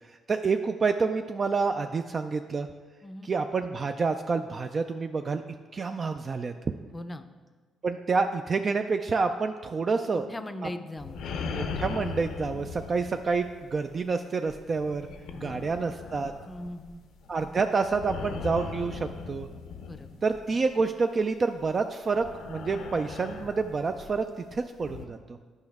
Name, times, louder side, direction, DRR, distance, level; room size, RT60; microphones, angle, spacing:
voice 1, 0.1-2.7 3.2-5.4 5.7-6.5 7.8-10.3 11.4-15.1 15.4-16.3 17.3-19.5 20.2-24.3 24.5-25.4, right 4 dB, 40° right, 7 dB, 0.3 m, -28 dB
voice 2, 3.0-3.3 6.9-7.2 10.1-11.3 15.3-15.9 16.4-17.0 19.8-20.1, left 1 dB, 20° left, 10 dB, 0.5 m, -40 dB
sound 1, 11.0-13.9 14.5-20.6 21.6-21.8 22.1-25.1, left 5 dB, 85° left, 0.6 m, -39 dB
9.8 x 5.3 x 3.5 m, 1.4 s
cardioid pair, 90°, 0 cm